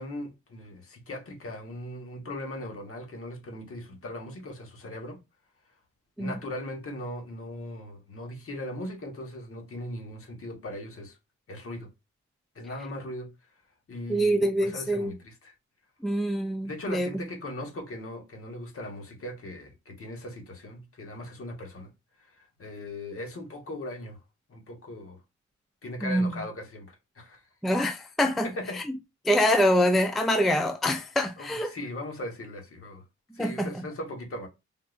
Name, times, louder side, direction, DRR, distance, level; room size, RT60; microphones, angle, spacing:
voice 1, 0.0-5.2 6.2-11.2 11.5-11.9 12.5-13.3 13.9-15.5 16.6-21.9 22.2-24.2 24.5-25.2 25.8-27.4 28.4-28.8 31.4-33.0 33.3-34.5, left 1 dB, 45° left, 1.2 m, -39 dB
voice 2, 14.1-15.1 16.0-17.1 26.0-26.4 27.6-28.5 28.8-28.9 29.3-31.7 33.4-33.7, equal, ahead, 0.4 m, -25 dB
3.6 x 2.6 x 2.4 m
cardioid pair, 80°, 30 cm